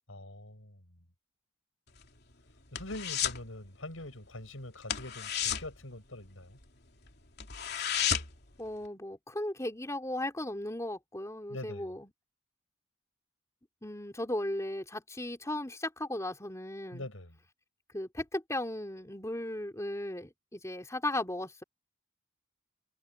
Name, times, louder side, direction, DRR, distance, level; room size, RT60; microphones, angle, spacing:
voice 1, 0.1-0.8 2.7-6.6 11.5-11.9 16.9-17.4, left 1 dB, 80° left, 7.9 m, -44 dB
sound 1, 1.9-3.5 3.7-4.0 4.3-4.5 4.8-6.7 7.0-7.1 7.4-8.5 8.8-8.9, left 9 dB, 55° left, 3.1 m, -33 dB
voice 2, 8.6-12.1 13.8-17.1 17.9-21.6, left 1 dB, 15° left, 3.7 m, -36 dB
head